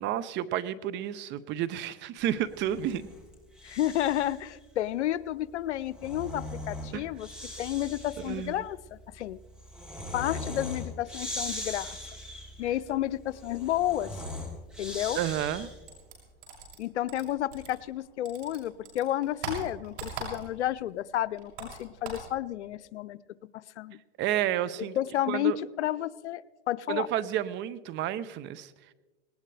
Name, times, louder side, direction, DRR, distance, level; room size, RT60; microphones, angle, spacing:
voice 1, 0.0-3.0 6.9-7.0 8.2-8.6 15.2-15.7 24.2-25.0 25.3-25.6 26.9-28.7, right 11 dB, 35° right, 15 dB, 0.7 m, -31 dB
Breathing, 2.5-4.4 5.7-15.9, left 1 dB, ahead, 3.9 m, -40 dB
voice 2, 3.6-7.3 7.6-8.8 9.2-9.4 10.1-12.0 12.6-14.1 14.8-15.2 16.8-23.2 23.5-24.0 25.0-27.1, left 13 dB, 85° left, 17 dB, 0.7 m, -31 dB
sound 1, 15.9-18.0 18.3-20.7 21.0-22.3, right 3 dB, 70° right, 7.0 m, -40 dB
19.5 x 18.5 x 3.3 m, 1.2 s
hypercardioid pair, 120°, 34 cm